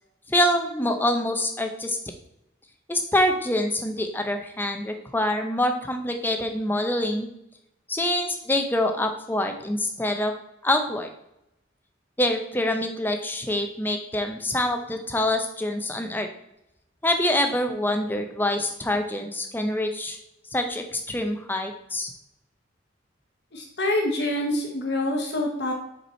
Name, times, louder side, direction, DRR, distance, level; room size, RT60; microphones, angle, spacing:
voice 1, 0.3-2.0 2.9-7.3 7.9-10.3 10.6-11.1 12.2-16.3 17.0-20.2 20.5-22.1, left 1 dB, 10° left, 5 dB, 0.6 m, -25 dB
voice 2, 23.5-25.7, left 1 dB, 55° left, 0 dB, 1.0 m, -26 dB
5.4 x 4.7 x 4.3 m, 0.82 s
head